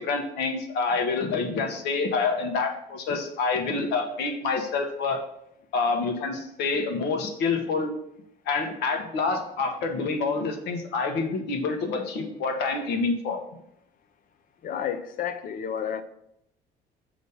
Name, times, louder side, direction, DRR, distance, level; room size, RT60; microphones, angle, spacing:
voice 1, 0.0-5.2 5.7-7.9 8.5-13.4, left 4 dB, 80° left, 1.1 m, -27 dB
voice 2, 14.6-16.0, left 8 dB, 55° left, 0.6 m, -31 dB
6.8 x 3.1 x 5.5 m
cardioid pair, 110°, 17 cm